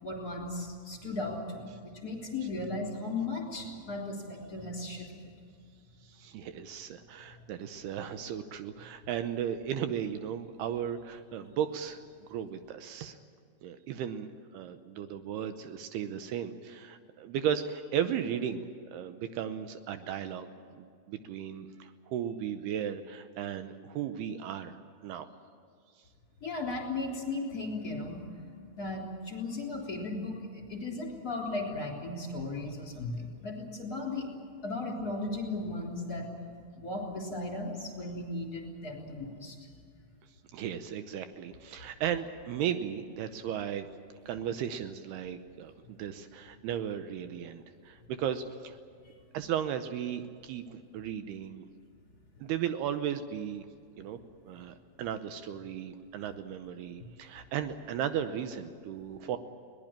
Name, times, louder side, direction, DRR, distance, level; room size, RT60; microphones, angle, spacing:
voice 1, 0.0-1.7 2.0-5.3 26.4-28.2 28.8-34.3 34.6-36.3 36.8-39.6, left 2 dB, 25° left, 0 dB, 3.6 m, -36 dB
voice 2, 6.0-12.0 12.3-13.2 13.6-18.7 18.9-20.5 20.7-24.8 25.0-25.3 40.5-43.9 44.3-48.8 49.3-51.7 52.4-53.7 54.0-54.2 54.5-59.4, right 9 dB, 75° right, 9 dB, 2.7 m, -35 dB
22.0 x 19.0 x 8.9 m, 2.3 s
omnidirectional pair, 4.8 m